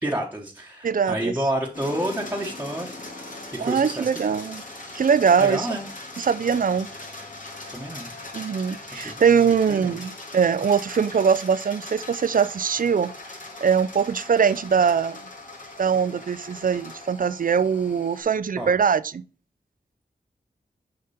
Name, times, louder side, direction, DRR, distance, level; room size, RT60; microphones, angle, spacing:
voice 1, 0.0-3.1 3.5-4.1 5.4-5.8 7.7-8.1 8.9-9.1 9.7-10.1 18.6-18.7, right 1 dB, 10° right, 1.2 m, -29 dB
voice 2, 0.8-1.3 3.6-4.6 4.9-5.7 6.2-6.9 8.3-13.1 13.6-15.2 15.8-19.2, right 6 dB, 55° right, 0.4 m, -22 dB
sound 1, 1.7-18.2, left 2 dB, 50° left, 2.4 m, -40 dB
6.7 x 5.2 x 4.2 m
wide cardioid pair, 85°, 17 cm